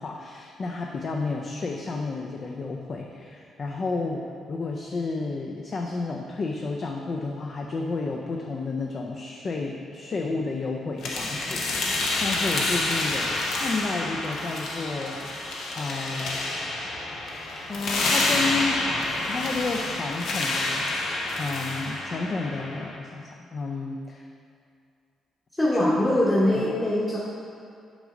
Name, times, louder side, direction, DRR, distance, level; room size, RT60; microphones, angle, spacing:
voice 1, 0.0-15.2 15.7-16.4 17.5-18.8 19.3-20.9 21.4-24.3 25.7-25.9 26.5-26.7, left 3 dB, 45° left, 0 dB, 0.5 m, -31 dB
sound 1, 11.0-23.0, left 2 dB, 75° left, 0.9 m, -28 dB
voice 2, 25.6-27.2, left 1 dB, 15° left, -7 dB, 1.1 m, -22 dB
6.1 x 5.1 x 3.8 m, 2.3 s
cardioid pair, 90°, 0 cm